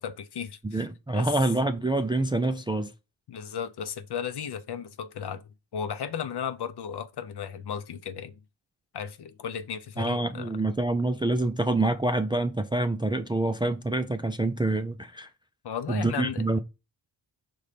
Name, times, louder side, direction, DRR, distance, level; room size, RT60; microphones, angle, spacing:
voice 1, 0.0-0.8 1.1-1.3 3.3-5.4 5.7-8.4 8.9-10.5 15.6-16.6, left 7 dB, 60° left, 0.7 m, -35 dB
voice 2, 0.6-2.9 10.0-15.3 15.9-16.6, right 2 dB, 10° right, 0.3 m, -26 dB
5.4 x 4.0 x 5.0 m
wide cardioid pair, 130°, 46 cm